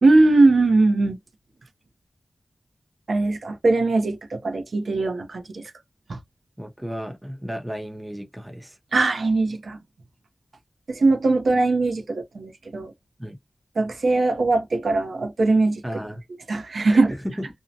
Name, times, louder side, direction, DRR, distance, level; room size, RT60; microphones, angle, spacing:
voice 1, 0.0-1.2 3.1-5.6 6.1-6.2 8.9-9.8 10.9-12.9 13.8-15.8 16.5-17.1, right 3 dB, 70° right, 0.6 m, -20 dB
voice 2, 6.6-8.8 13.2-13.4 15.8-16.2 16.9-17.5, equal, 10° right, 0.6 m, -33 dB
2.7 x 2.1 x 2.6 m
wide cardioid pair, 105°, 0 cm